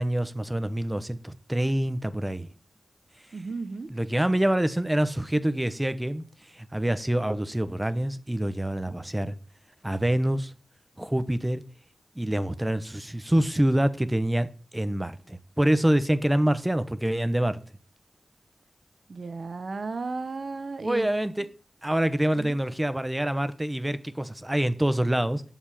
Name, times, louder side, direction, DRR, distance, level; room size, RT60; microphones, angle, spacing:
voice 1, 0.0-2.5 3.9-6.2 6.5-9.3 9.8-10.5 11.0-11.6 12.1-14.5 14.7-17.6 20.8-21.5 21.8-25.4, right 1 dB, 15° right, 1.1 m, -26 dB
voice 2, 3.3-3.9 19.1-21.1 22.4-22.6, right 3 dB, 60° right, 1.3 m, -34 dB
8.9 x 7.3 x 8.6 m
wide cardioid pair, 80°, 0 cm